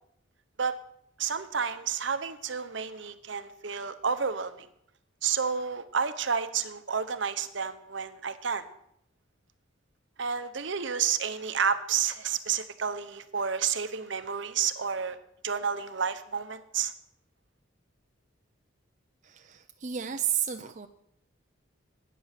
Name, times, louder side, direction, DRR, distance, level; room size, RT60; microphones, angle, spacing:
voice 1, 1.2-4.7 5.2-8.7 10.2-15.2 15.4-16.9, right 6 dB, 65° right, 11 dB, 0.9 m, -30 dB
voice 2, 19.2-20.9, right 9 dB, 40° right, 7 dB, 0.5 m, -32 dB
13.0 x 9.3 x 5.9 m, 0.76 s
head